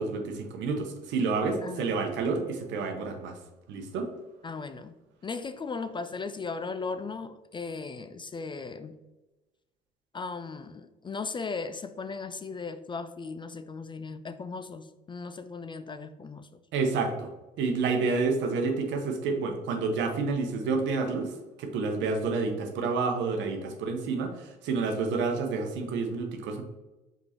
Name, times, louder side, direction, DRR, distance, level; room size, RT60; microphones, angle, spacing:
voice 1, 0.0-3.4 3.7-4.1 16.7-17.3 17.6-26.6, right 4 dB, 65° right, 4 dB, 0.9 m, -29 dB
voice 2, 1.6-1.9 4.4-5.0 5.2-9.0 10.1-16.6, left 4 dB, 25° left, 11 dB, 0.3 m, -37 dB
4.8 x 3.7 x 2.9 m, 1.1 s
hypercardioid pair, 55°, 20 cm